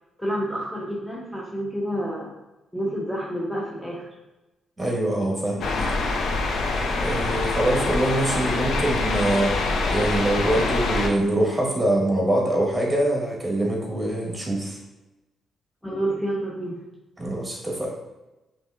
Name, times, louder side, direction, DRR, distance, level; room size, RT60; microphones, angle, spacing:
voice 1, 0.2-2.4 2.7-4.1 5.7-6.0 15.8-16.9, right 1 dB, 5° left, -4 dB, 0.7 m, -29 dB
voice 2, 4.8-5.7 7.0-9.6 9.9-14.8 17.2-17.9, right 1 dB, 15° right, -2 dB, 1.4 m, -24 dB
sound 1, 5.6-11.1, left 3 dB, 70° left, 0.6 m, -25 dB
5.3 x 3.3 x 2.5 m, 1.0 s
cardioid pair, 80°, 0 cm